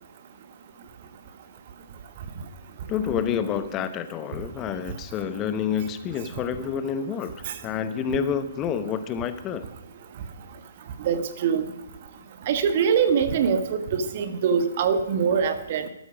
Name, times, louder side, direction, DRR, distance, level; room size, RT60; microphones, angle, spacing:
voice 1, 2.9-9.7, left 7 dB, 25° left, 12 dB, 0.9 m, -28 dB
voice 2, 11.0-11.6 12.5-15.9, right 6 dB, 45° right, 10 dB, 1.3 m, -23 dB
13.5 x 12.5 x 5.0 m, 0.96 s
figure-of-eight pair, 125°, 0 cm